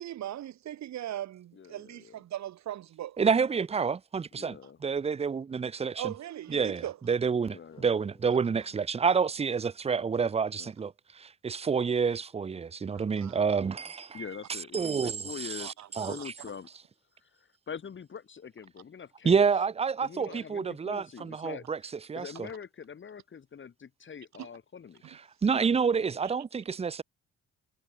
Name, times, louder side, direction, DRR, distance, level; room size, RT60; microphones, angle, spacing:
voice 1, 0.0-3.2 5.9-7.0 13.2-13.4 15.6-16.3 24.4-24.5 25.0-25.2 26.2-26.3, right 12 dB, 65° right, 1.1 m, -39 dB
voice 2, 1.5-2.2 4.3-4.8 7.5-7.9 10.6-10.7 14.1-15.7 16.1-16.7 17.2-19.4 20.0-21.6 22.1-25.0, left 7 dB, 40° left, 1.6 m, -44 dB
voice 3, 3.2-6.1 6.5-16.3 19.2-21.8 22.1-22.5 25.1-27.0, right 5 dB, 20° right, 0.5 m, -29 dB
sound 1, 7.7-10.9, left 2 dB, 15° left, 5.1 m, -64 dB
cardioid pair, 90°, 30 cm